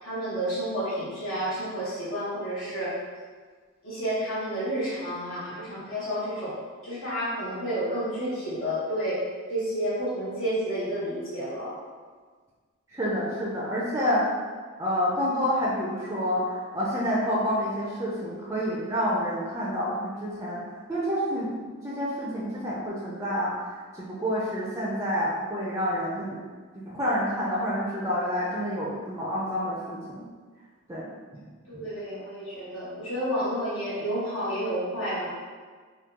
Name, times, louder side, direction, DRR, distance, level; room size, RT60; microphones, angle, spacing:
voice 1, 0.0-2.9 3.8-6.6 6.8-9.2 9.5-11.7 31.7-35.3, equal, 75° left, -9 dB, 1.2 m, -30 dB
voice 2, 12.9-14.3 14.8-20.6 20.9-21.5 21.8-23.5 24.0-26.4 26.8-30.2 30.9-31.1 31.3-31.4 31.7-31.8, equal, 15° right, -6 dB, 0.4 m, -28 dB
3.5 x 2.2 x 2.8 m, 1.5 s
head